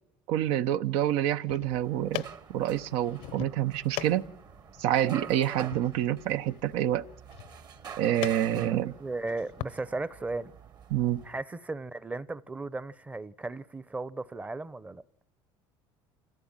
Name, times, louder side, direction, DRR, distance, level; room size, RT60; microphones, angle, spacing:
voice 1, 0.3-2.2 2.5-4.3 4.8-7.1 8.0-8.9 10.9-11.2, right 12 dB, 75° right, 0.9 m, -27 dB
sound 1, 1.2-9.8, left 15 dB, 75° left, 0.8 m, -43 dB
sound 2, 1.6-11.4, right 7 dB, 45° right, 1.4 m, -47 dB
voice 2, 8.5-10.5 11.2-15.0, right 3 dB, 15° right, 0.8 m, -36 dB
27.5 x 15.5 x 8.9 m
cardioid pair, 120°, 10 cm